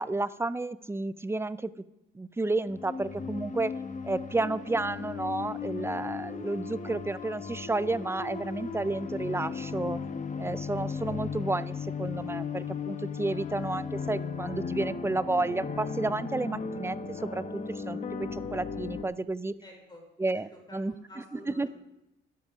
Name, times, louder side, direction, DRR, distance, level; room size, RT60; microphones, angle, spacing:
voice 1, 0.0-1.7 2.1-3.7 4.0-10.0 10.4-18.0 18.3-19.5 20.2-20.9 21.5-21.7, right 2 dB, 10° right, 16 dB, 0.5 m, -31 dB
sound 1, 2.7-19.0, left 5 dB, 40° left, 1.1 m, -36 dB
voice 2, 19.6-21.7, equal, 20° left, 1 dB, 4.5 m, -50 dB
12.5 x 11.0 x 5.0 m, 0.88 s
cardioid pair, 90°, 20 cm